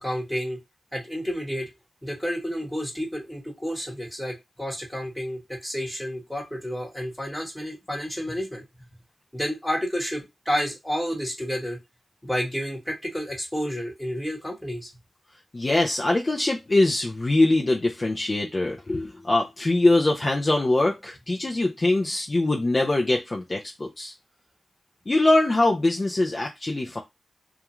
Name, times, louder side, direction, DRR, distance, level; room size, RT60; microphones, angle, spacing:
voice 1, 0.0-0.6 0.9-1.7 2.0-8.6 9.3-11.8 12.2-14.9, equal, 5° left, 0 dB, 1.2 m, -30 dB
voice 2, 15.5-24.1 25.1-27.0, left 2 dB, 35° left, 0 dB, 0.4 m, -23 dB
2.3 x 2.2 x 3.0 m, 0.20 s
cardioid pair, 75°, 0 cm